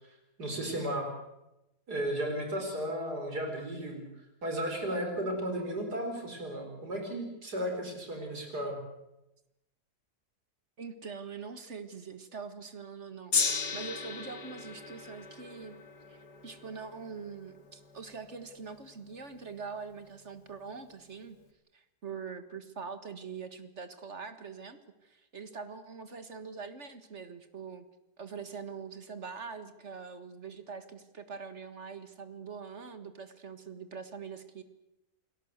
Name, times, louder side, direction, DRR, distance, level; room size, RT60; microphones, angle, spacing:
voice 1, 0.4-1.1 1.9-4.1 4.4-8.8, right 1 dB, 75° right, 3 dB, 4.9 m, -34 dB
voice 2, 10.8-21.4 21.7-27.9 28.2-34.6, right 5 dB, 45° right, 10 dB, 1.9 m, -43 dB
Gong, 13.3-19.7 20.5-20.6, left 5 dB, 75° left, 2.9 m, -36 dB
29.0 x 18.0 x 8.0 m, 0.93 s
omnidirectional pair, 1.7 m